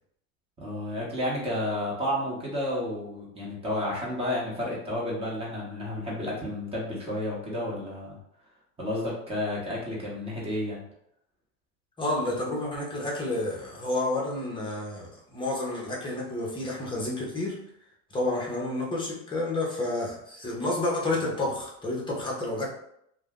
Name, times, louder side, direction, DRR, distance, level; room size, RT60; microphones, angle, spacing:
voice 1, 0.6-8.2 8.8-10.8, left 1 dB, 15° right, -5 dB, 1.1 m, -31 dB
voice 2, 12.0-17.6 18.1-22.7, left 2 dB, 10° left, -3 dB, 0.8 m, -30 dB
2.4 x 2.3 x 3.6 m, 0.74 s
supercardioid pair, 115°, 39 cm